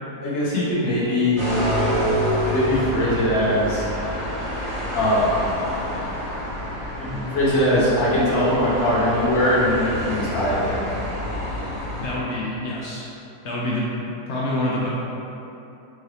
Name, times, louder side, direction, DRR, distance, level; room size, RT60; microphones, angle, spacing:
voice 1, 0.2-1.4 2.4-3.8 4.9-5.4 7.0-10.7, left 1 dB, 45° left, -9 dB, 1.2 m, -21 dB
sound 1, 1.4-12.1, equal, 25° left, 1.1 m, -27 dB
voice 2, 12.0-13.1 13.4-14.9, left 1 dB, 65° left, -6 dB, 0.7 m, -27 dB
4.7 x 2.6 x 3.2 m, 2.9 s
omnidirectional pair, 1.7 m